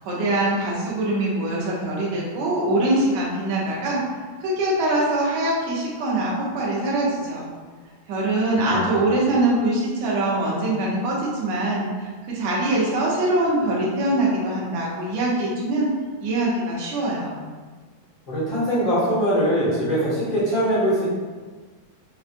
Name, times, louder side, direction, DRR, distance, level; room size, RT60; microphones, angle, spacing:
voice 1, 0.0-4.0 4.4-7.5 8.1-15.9 16.2-17.4, right 1 dB, 70° right, -5 dB, 1.8 m, -23 dB
voice 2, 8.7-9.0 18.3-21.0, equal, 60° left, -11 dB, 1.0 m, -22 dB
5.2 x 2.0 x 2.5 m, 1.4 s
omnidirectional pair, 3.5 m